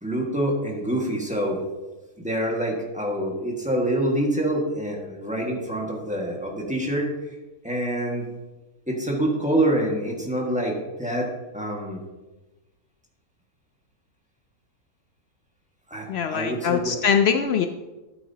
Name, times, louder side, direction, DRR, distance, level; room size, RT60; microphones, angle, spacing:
voice 1, 0.0-1.6 2.2-7.4 7.6-8.2 8.9-12.0 15.9-17.0, right 1 dB, 5° right, -2 dB, 1.6 m, -26 dB
voice 2, 16.1-17.7, left 7 dB, 85° left, 7 dB, 0.5 m, -22 dB
12.0 x 9.3 x 2.9 m, 1.1 s
omnidirectional pair, 1.6 m